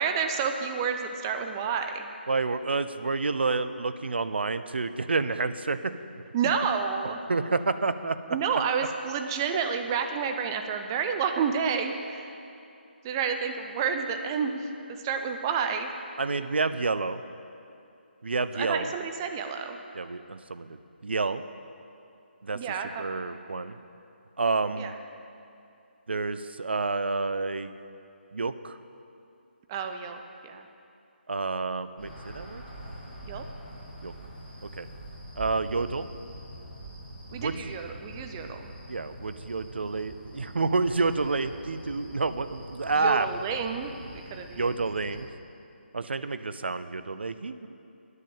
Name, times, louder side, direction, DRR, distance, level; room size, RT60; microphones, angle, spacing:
voice 1, 0.0-2.1 6.3-7.2 8.3-12.3 13.0-14.7 15.0-15.9 18.5-19.8 22.5-23.0 24.8-24.9 29.7-30.7 33.2-33.4 37.3-38.7 42.9-43.9 44.3-44.7, right 6 dB, 20° right, 6 dB, 0.7 m, -30 dB
voice 2, 2.3-5.9 7.3-8.2 16.2-17.2 18.2-18.9 19.9-21.4 22.4-22.6 23.0-23.8 24.4-24.9 26.1-27.7 28.3-28.8 31.3-32.6 34.0-34.1 34.8-34.9 35.4-36.1 37.3-37.5 38.9-43.3 44.6-45.3 45.9-47.7, right 3 dB, 70° right, 12 dB, 0.6 m, -29 dB
sound 1, 32.0-45.2, right 1 dB, 5° left, 2.8 m, -44 dB
9.7 x 7.6 x 8.6 m, 2.6 s
figure-of-eight pair, 150°, 6 cm